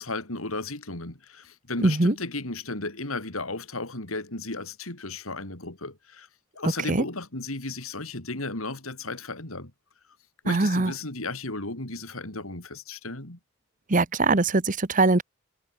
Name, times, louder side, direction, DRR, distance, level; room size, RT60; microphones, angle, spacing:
voice 1, 0.0-6.3 6.5-9.7 10.4-13.4, left 2 dB, 85° left, 4.6 m, -34 dB
voice 2, 1.8-2.1 6.9-7.0 10.5-10.9 13.9-15.2, right 2 dB, 40° right, 1.1 m, -22 dB
head